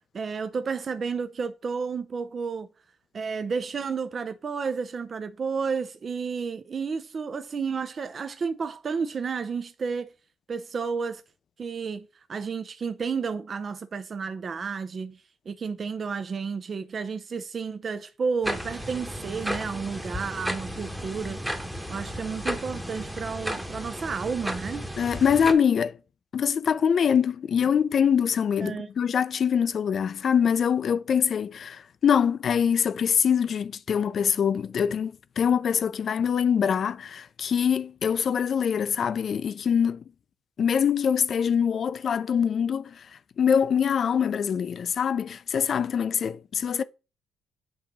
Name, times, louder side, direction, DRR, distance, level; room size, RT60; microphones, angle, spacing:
voice 1, 0.1-2.7 3.1-10.1 10.5-11.2 11.6-21.4 21.9-24.9 28.6-28.9, right 5 dB, 45° right, 0.5 m, -31 dB
sound 1, 18.4-25.5, equal, 5° right, 1.0 m, -34 dB
voice 2, 25.0-26.0 26.3-40.0 40.6-43.1 43.4-46.8, left 7 dB, 55° left, 0.4 m, -24 dB
7.8 x 3.0 x 5.2 m
cardioid pair, 90°, 0 cm